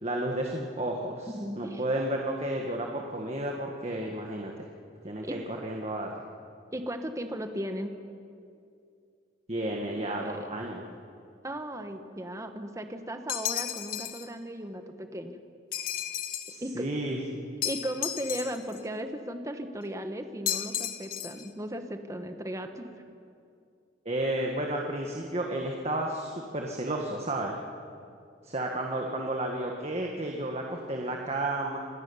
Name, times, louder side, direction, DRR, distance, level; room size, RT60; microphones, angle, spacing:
voice 1, 0.0-1.3 1.6-4.7 5.0-6.1 9.5-10.8 16.5-17.5 24.0-27.6 28.4-31.8, right 1 dB, 35° right, 1 dB, 1.7 m, -32 dB
voice 2, 1.3-1.8 5.2-5.4 6.7-8.0 10.0-10.6 11.4-15.4 16.5-16.9 17.6-22.9, equal, 15° right, 7 dB, 1.3 m, -36 dB
sound 1, 13.3-14.3 15.7-16.6 17.6-18.8 20.5-21.5, left 10 dB, 50° left, 1.2 m, -33 dB
26.5 x 12.5 x 9.7 m, 2.4 s
head